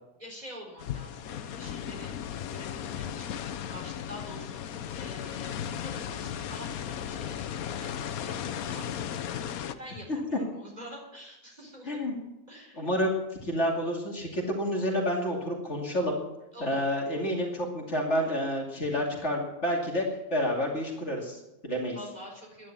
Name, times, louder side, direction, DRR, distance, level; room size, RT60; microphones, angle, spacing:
voice 1, 0.2-2.2 2.4-3.4 3.7-11.9 12.5-12.9 16.5-17.0 21.9-22.7, equal, 25° right, -1 dB, 4.4 m, -47 dB
sound 1, 0.8-9.7, left 9 dB, 70° left, 1.2 m, -36 dB
voice 2, 12.7-16.2 16.6-22.0, equal, 45° left, -1 dB, 2.9 m, -29 dB
11.0 x 10.5 x 8.6 m, 0.91 s
omnidirectional pair, 1.6 m